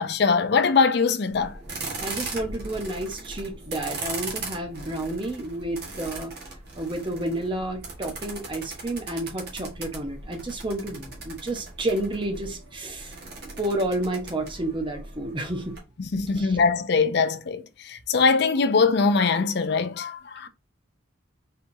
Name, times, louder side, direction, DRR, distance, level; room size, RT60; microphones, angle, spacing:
voice 1, 0.0-1.6 16.0-20.5, left 4 dB, 55° left, 0.5 m, -22 dB
sound 1, 1.3-15.8, right 3 dB, 50° right, 1.5 m, -38 dB
voice 2, 2.0-6.3 6.7-13.1 13.6-15.7 16.4-16.6, right 1 dB, 25° right, 0.9 m, -30 dB
4.3 x 3.5 x 2.7 m
head